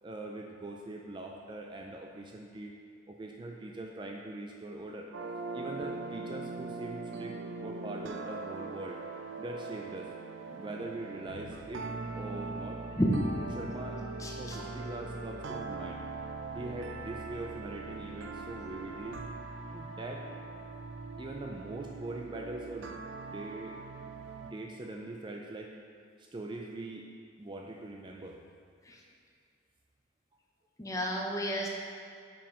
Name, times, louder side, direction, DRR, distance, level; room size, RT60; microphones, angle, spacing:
voice 1, 0.0-2.7 3.1-5.1 5.5-9.0 9.4-10.1 10.6-11.9 12.1-12.8 13.6-14.0 14.4-16.0 16.5-19.2 19.7-20.3 21.2-23.0 23.3-23.8 24.4-25.8 26.2-27.1 27.4-28.4, right 2 dB, 25° right, 1 dB, 0.4 m, -42 dB
sound 1, 5.1-24.5, right 3 dB, 80° right, 0.5 m, -41 dB
voice 2, 14.2-14.6 28.9-29.0 30.8-31.7, equal, 15° left, -1 dB, 0.7 m, -31 dB
5.9 x 5.1 x 4.9 m, 2.3 s
head